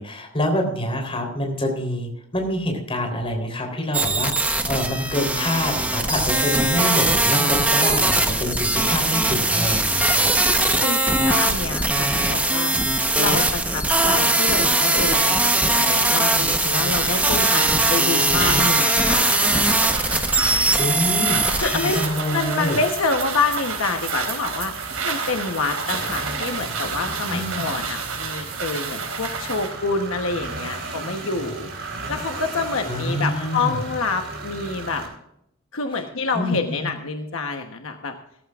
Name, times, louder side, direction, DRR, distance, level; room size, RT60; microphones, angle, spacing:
voice 1, 0.0-10.3 20.8-21.4 21.7-22.8 27.3-27.7 32.9-33.8 36.3-36.9, left 1 dB, 25° left, 2 dB, 3.6 m, -26 dB
sound 1, 3.9-22.1, right 2 dB, 5° right, 1.0 m, -20 dB
voice 2, 10.8-12.8 13.2-20.8 21.6-22.0 22.3-24.7 25.0-35.0 35.7-38.1, left 4 dB, 70° left, 4 dB, 1.1 m, -27 dB
sound 2, 16.8-29.8, right 5 dB, 90° right, 3.9 m, -30 dB
sound 3, 21.0-35.1, right 3 dB, 55° right, 3.7 m, -35 dB
17.0 x 14.5 x 2.5 m, 0.77 s
head